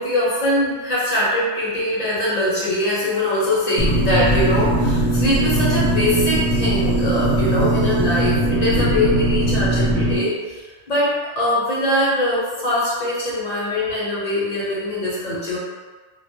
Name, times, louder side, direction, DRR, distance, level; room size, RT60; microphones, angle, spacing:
voice 1, 0.0-15.6, left 1 dB, 40° left, -8 dB, 0.8 m, -22 dB
sound 1, 3.8-10.2, right 1 dB, 85° left, 0.9 m, -20 dB
2.3 x 2.0 x 2.7 m, 1.4 s
omnidirectional pair, 1.2 m